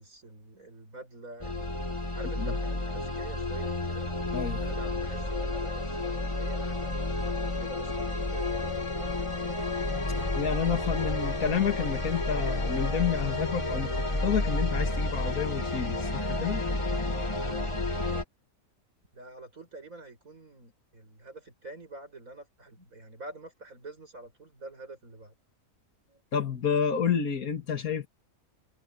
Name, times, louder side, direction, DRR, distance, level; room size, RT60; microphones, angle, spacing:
voice 1, 0.0-1.8 2.1-4.1 4.6-9.8 17.1-17.7 17.9-18.2 19.1-25.3 26.1-26.2, right 2 dB, 60° right, 7.3 m, -47 dB
sound 1, 1.4-18.2, left 2 dB, 20° left, 2.1 m, -31 dB
voice 2, 4.3-4.6 10.1-16.7 26.3-28.1, left 7 dB, 70° left, 2.4 m, -30 dB
omnidirectional pair, 1.6 m